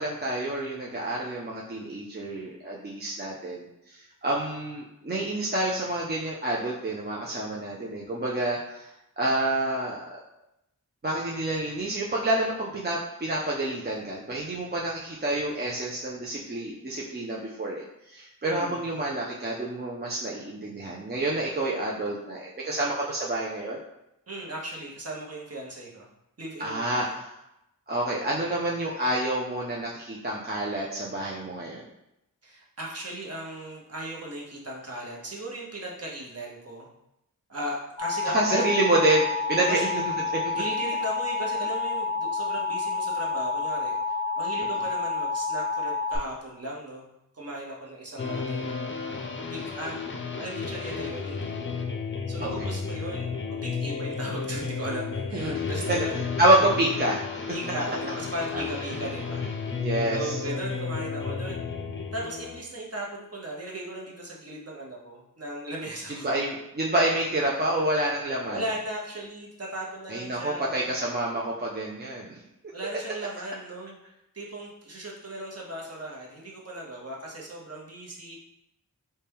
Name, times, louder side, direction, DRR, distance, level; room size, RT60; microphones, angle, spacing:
voice 1, 0.0-10.0 11.0-23.8 26.6-27.3 27.9-31.8 38.2-40.5 52.6-52.7 55.3-56.0 56.4-57.2 59.8-60.4 66.1-68.6 70.1-72.4, right 1 dB, 30° right, -4 dB, 0.5 m, -28 dB
voice 2, 18.4-18.8 24.3-26.1 26.4-27.2 32.4-36.9 37.5-38.6 39.6-39.8 40.5-47.1 47.3-50.0 50.4-51.7 52.3-56.3 57.5-59.7 60.1-61.7 62.1-66.3 68.5-70.9 72.7-74.0 74.3-78.4, right 1 dB, 45° right, -3 dB, 0.9 m, -37 dB
Alarm, 38.0-46.2, left 3 dB, ahead, 1.2 m, -29 dB
sound 1, 48.2-62.6, left 5 dB, 35° left, 0.5 m, -33 dB
4.2 x 2.2 x 3.4 m, 0.86 s
wide cardioid pair, 75°, 34 cm